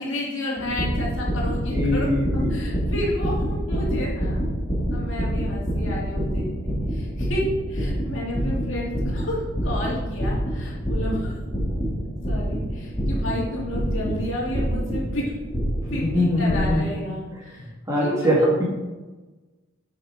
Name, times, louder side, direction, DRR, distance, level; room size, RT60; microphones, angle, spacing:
voice 1, 0.0-2.1 2.5-4.4 4.9-11.3 12.3-15.3 15.9-17.7 18.0-18.5, left 1 dB, 60° left, -4 dB, 2.8 m, -31 dB
sound 1, 0.6-16.8, equal, 25° left, 2.9 m, -27 dB
voice 2, 1.6-2.6 15.8-16.8 17.3-17.4 17.9-18.6, left 1 dB, 15° right, -6 dB, 3.0 m, -22 dB
9.0 x 6.5 x 5.2 m, 1.2 s
head